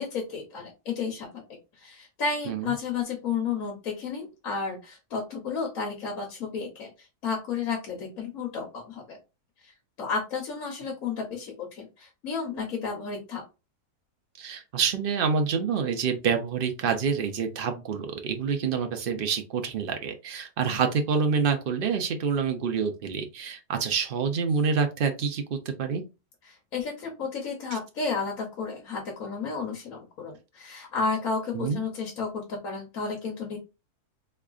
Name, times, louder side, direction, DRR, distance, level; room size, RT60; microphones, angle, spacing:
voice 1, 0.0-1.4 1.8-9.2 9.6-9.7 10.0-13.4 26.4-33.6, left 5 dB, 60° left, 0 dB, 1.4 m, -32 dB
voice 2, 14.4-26.0 27.7-27.8 31.5-31.8, right 6 dB, 60° right, 5 dB, 0.6 m, -27 dB
3.6 x 3.3 x 2.4 m, 0.27 s
omnidirectional pair, 1.7 m